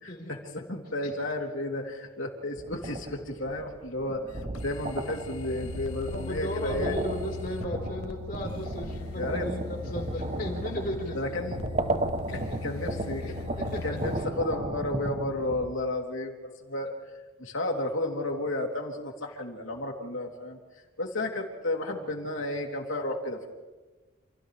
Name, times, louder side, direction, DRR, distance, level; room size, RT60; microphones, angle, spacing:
voice 1, 0.5-4.2 4.6-6.9 9.2-9.5 11.1-11.6 12.3-13.3 13.8-17.1 17.4-20.6 21.0-23.5, left 1 dB, 65° left, 1 dB, 3.3 m, -32 dB
sound 1, 2.6-15.7, right 2 dB, 30° right, 0.9 m, -35 dB
sound 2, 4.3-14.3, left 4 dB, 85° left, 0.8 m, -39 dB
voice 2, 6.1-11.4 12.5-12.6 13.2-13.3 13.7-14.0, equal, 40° left, 1 dB, 4.6 m, -35 dB
29.5 x 29.0 x 3.4 m, 1.2 s
head